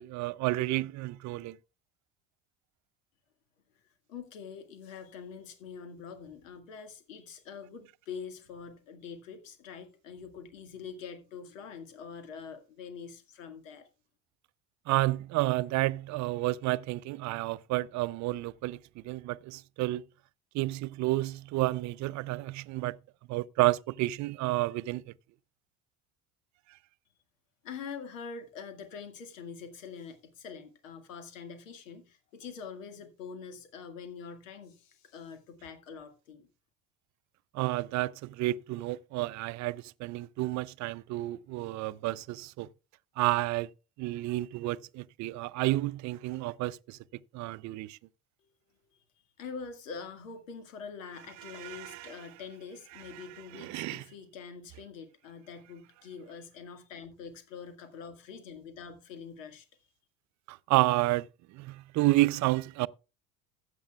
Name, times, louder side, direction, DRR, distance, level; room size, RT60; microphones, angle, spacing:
voice 1, 0.0-1.6 14.9-20.0 20.5-23.0 23.3-25.1 37.5-42.7 43.2-43.7 44.0-47.0 47.3-48.0 51.5-52.1 53.5-54.0 60.5-62.9, right 18 dB, 45° right, 0.6 m, -30 dB
voice 2, 3.8-13.9 27.6-36.5 48.4-48.5 48.9-59.7, left 6 dB, 80° left, 2.0 m, -45 dB
15.0 x 9.1 x 2.4 m
hypercardioid pair, 65°, 39 cm